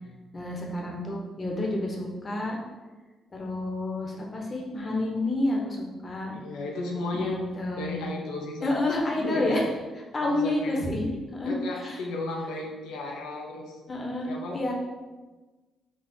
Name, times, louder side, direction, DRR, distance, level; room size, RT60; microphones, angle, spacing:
voice 1, 0.3-2.6 3.3-6.3 7.1-7.9 8.6-9.7 10.1-12.0 13.9-14.7, left 1 dB, 35° left, -1 dB, 1.0 m, -29 dB
voice 2, 6.3-7.4 7.8-8.8 9.1-9.6 10.2-10.9 11.4-13.8 14.3-14.6, left 2 dB, 90° left, -1 dB, 0.6 m, -34 dB
4.2 x 2.3 x 4.4 m, 1.3 s
cardioid pair, 90°, 0 cm